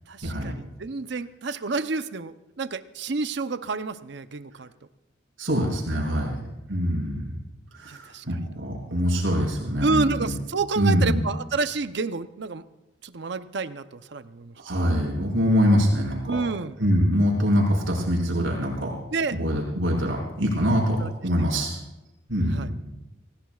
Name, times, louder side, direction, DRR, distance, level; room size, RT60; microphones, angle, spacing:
voice 1, 0.1-4.7 6.0-6.5 7.9-8.2 8.7-8.9 9.8-12.6 13.0-14.5 16.3-16.8 19.1-19.4 21.0-21.1 21.4-21.6 22.5-22.7, right 4 dB, 60° right, 11 dB, 0.7 m, -29 dB
voice 2, 5.4-6.4 6.7-7.3 7.7-10.3 10.8-11.2 14.6-16.4 16.8-18.9 19.3-21.8 22.3-22.9, equal, 90° right, -1 dB, 5.9 m, -24 dB
27.0 x 17.5 x 2.4 m, 1.0 s
head